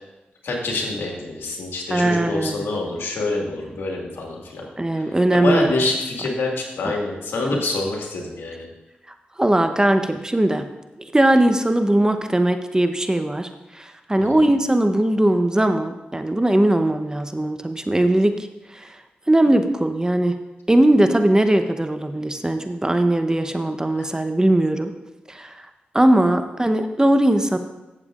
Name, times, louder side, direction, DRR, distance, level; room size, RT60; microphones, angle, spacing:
voice 1, 0.4-4.7 4.9-8.7 14.2-14.4, left 2 dB, 85° left, -1 dB, 1.8 m, -26 dB
voice 2, 1.9-2.6 4.8-5.7 9.4-10.7 11.1-18.4 18.7-19.0 19.3-20.4 20.7-24.9 25.3-25.7 25.9-27.6, right 1 dB, 20° right, 8 dB, 0.8 m, -19 dB
15.0 x 7.0 x 2.5 m, 1.0 s
cardioid pair, 45°, 4 cm